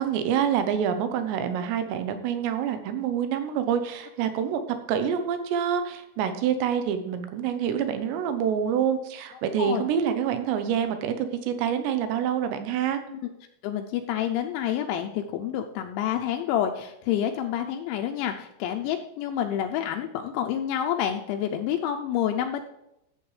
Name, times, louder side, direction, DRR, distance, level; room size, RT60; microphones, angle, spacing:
voice 1, 0.0-4.6 4.9-13.0, right 8 dB, 75° right, 9 dB, 2.8 m, -26 dB
voice 2, 13.6-22.6, left 10 dB, 85° left, 4 dB, 2.9 m, -28 dB
14.5 x 7.8 x 3.3 m, 0.84 s
omnidirectional pair, 5.6 m